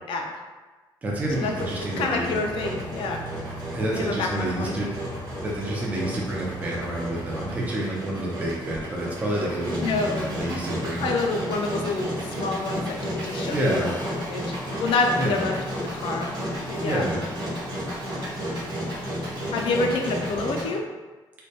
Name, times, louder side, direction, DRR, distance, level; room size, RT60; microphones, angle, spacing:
voice 1, 1.0-2.3 3.7-4.9 5.4-11.1 13.4-14.0 15.2-15.4 16.8-17.2, right 1 dB, 15° right, -4 dB, 0.4 m, -28 dB
Aircraft, 1.1-7.6, right 1 dB, 90° right, 0.6 m, -39 dB
Engine, 1.3-20.7, equal, 60° right, 0.9 m, -33 dB
voice 2, 2.0-3.2 3.9-4.8 9.8-10.4 11.0-13.9 14.3-16.3 16.7-17.1 19.5-20.8, left 3 dB, 80° left, 2 dB, 0.4 m, -27 dB
2.2 x 2.1 x 2.7 m, 1.3 s
cardioid pair, 155°, 9 cm